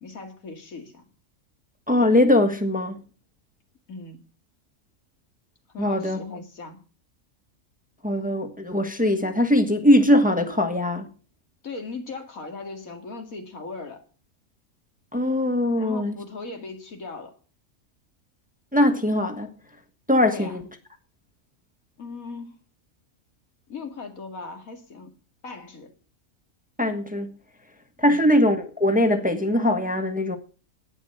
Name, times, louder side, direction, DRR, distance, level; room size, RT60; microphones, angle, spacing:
voice 1, 0.0-1.1 3.9-4.3 5.7-6.8 11.6-14.0 15.8-17.3 20.3-20.6 22.0-22.6 23.7-25.1 25.4-25.9 28.1-28.2, left 3 dB, 85° left, 2.6 m, -38 dB
voice 2, 1.9-3.0 5.8-6.2 8.0-11.1 15.1-16.1 18.7-19.5 20.1-20.6 26.8-27.3 28.0-30.4, left 1 dB, 5° right, 1.3 m, -21 dB
10.5 x 9.4 x 7.7 m
omnidirectional pair, 1.4 m